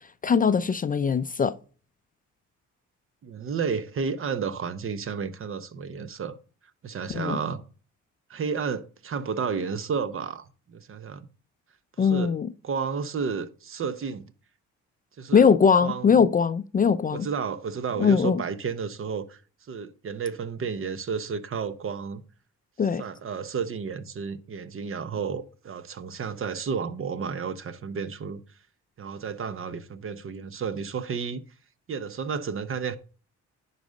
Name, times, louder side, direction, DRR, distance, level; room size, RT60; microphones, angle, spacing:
voice 1, 0.2-1.5 7.1-7.4 12.0-12.5 15.3-17.3 18.0-18.4 22.8-23.0, left 6 dB, 30° left, 0.4 m, -21 dB
voice 2, 3.2-6.4 6.8-7.6 8.3-11.3 12.0-12.3 12.6-14.2 15.2-15.5 15.8-16.3 17.1-19.4 19.7-22.2 23.0-28.4 29.0-31.4 31.9-33.0, right 6 dB, 45° right, 0.8 m, -32 dB
10.5 x 4.1 x 5.1 m
cardioid pair, 90°, 30 cm